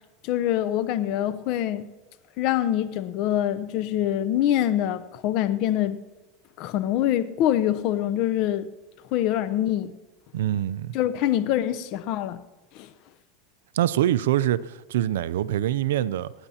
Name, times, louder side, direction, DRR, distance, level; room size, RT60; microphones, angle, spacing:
voice 1, 0.2-1.9 2.4-6.0 6.6-8.7 9.1-9.9 10.9-12.4 12.7-12.9, left 12 dB, 55° left, 0.7 m, -25 dB
voice 2, 10.3-10.9 13.7-16.3, right 12 dB, 85° right, 0.4 m, -24 dB
28.0 x 9.8 x 2.9 m
supercardioid pair, 110°, 0 cm